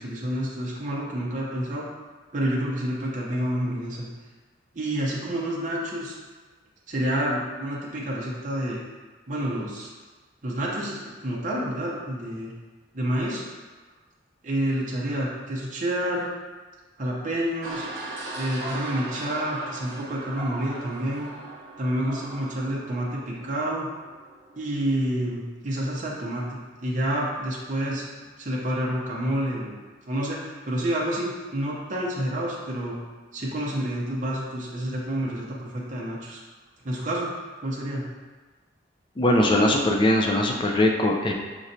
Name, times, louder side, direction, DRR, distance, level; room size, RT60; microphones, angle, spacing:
voice 1, 0.0-1.9 2.3-4.1 4.7-6.1 6.9-8.8 9.3-9.9 10.4-12.5 12.9-13.4 14.4-16.3 17.0-17.9 18.4-21.3 21.8-23.9 24.6-29.7 30.0-33.0 33.3-36.4 36.8-37.3 37.6-38.1, right 1 dB, 40° right, -5 dB, 0.6 m, -28 dB
sound 1, 17.6-24.7, right 2 dB, 90° right, 0.7 m, -38 dB
voice 2, 39.2-41.3, left 1 dB, 25° left, 1 dB, 0.4 m, -21 dB
5.2 x 3.0 x 2.6 m, 1.3 s
head